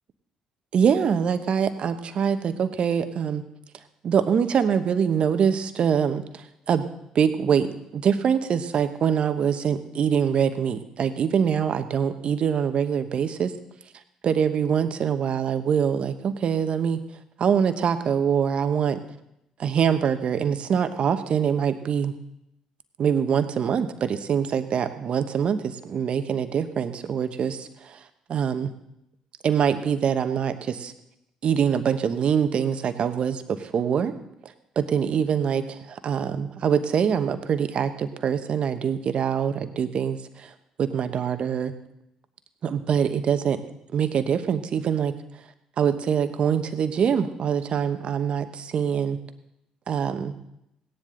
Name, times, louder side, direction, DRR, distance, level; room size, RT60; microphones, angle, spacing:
voice 1, 0.7-3.4 4.0-6.8 7.1-7.7 7.9-13.5 14.2-17.0 17.4-19.0 19.6-22.1 23.0-28.0 28.3-28.7 29.4-30.9 31.4-34.1 34.8-40.5 40.8-41.7 42.6-43.6 43.9-45.1 45.8-49.2 49.9-50.3, right 7 dB, 55° right, 10 dB, 1.0 m, -24 dB
16.5 x 10.0 x 3.8 m, 0.82 s
hypercardioid pair, 55°, 2 cm